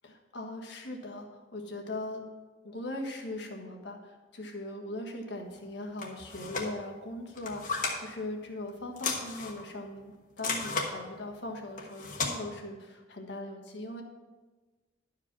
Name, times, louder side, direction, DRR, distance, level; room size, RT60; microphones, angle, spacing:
voice 1, 0.0-2.2 2.6-14.0, left 1 dB, 65° left, 2 dB, 1.4 m, -40 dB
sound 1, 6.0-6.7 7.3-8.0 8.9-9.6 10.4-10.9 11.8-12.3, left 4 dB, 45° left, 1.3 m, -34 dB
12.0 x 5.0 x 6.0 m, 1.3 s
head